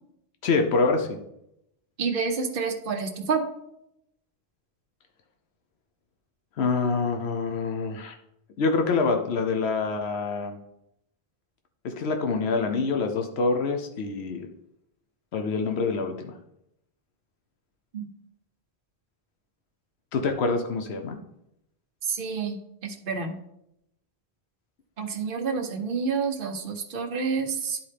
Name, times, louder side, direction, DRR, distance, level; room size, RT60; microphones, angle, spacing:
voice 1, 0.4-1.2 6.6-8.1 8.6-10.6 11.8-14.5 15.3-16.3 20.1-21.2, left 4 dB, 85° left, 5 dB, 1.0 m, -26 dB
voice 2, 2.0-3.4 17.9-18.1 22.0-23.4 25.0-27.8, right 5 dB, 60° right, 2 dB, 1.1 m, -29 dB
11.5 x 4.3 x 3.3 m, 0.82 s
omnidirectional pair, 1.1 m